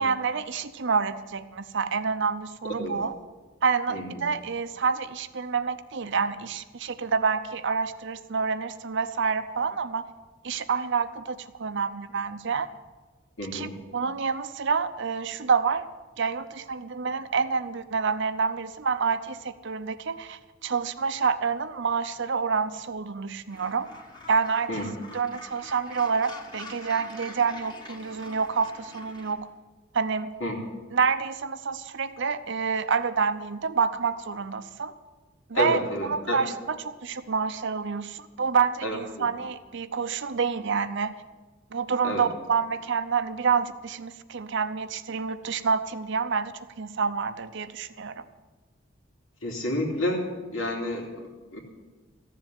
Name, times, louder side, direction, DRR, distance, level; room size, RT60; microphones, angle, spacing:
voice 1, 0.0-3.1 3.6-10.0 10.4-12.7 13.5-15.9 16.2-23.9 24.3-24.7 25.1-29.5 29.9-30.3 30.9-34.9 35.5-41.1 41.7-48.2, right 5 dB, 65° right, 12 dB, 0.7 m, -28 dB
voice 2, 3.9-4.2 13.4-13.8 24.7-24.9 30.4-30.6 35.5-36.4 38.8-39.3 42.0-42.3 49.4-51.6, left 1 dB, 85° left, 0 dB, 3.0 m, -30 dB
Gull seagull, 23.5-29.3, left 2 dB, 20° left, 1.5 m, -45 dB
14.5 x 7.5 x 9.5 m, 1.2 s
head